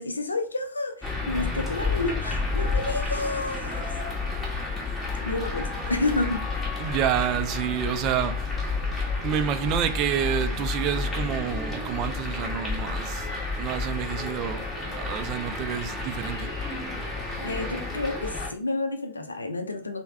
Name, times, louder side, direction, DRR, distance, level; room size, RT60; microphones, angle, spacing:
voice 1, 0.0-3.9 5.2-6.5 17.4-20.0, left 2 dB, 80° left, 0.4 m, -30 dB
sound 1, 1.0-18.5, left 3 dB, 10° left, 1.1 m, -30 dB
voice 2, 6.8-8.5 9.0-13.3 13.6-14.7 15.0-16.5, right 9 dB, 40° right, 0.4 m, -28 dB
3.3 x 2.1 x 3.3 m
figure-of-eight pair, 90°, 0 cm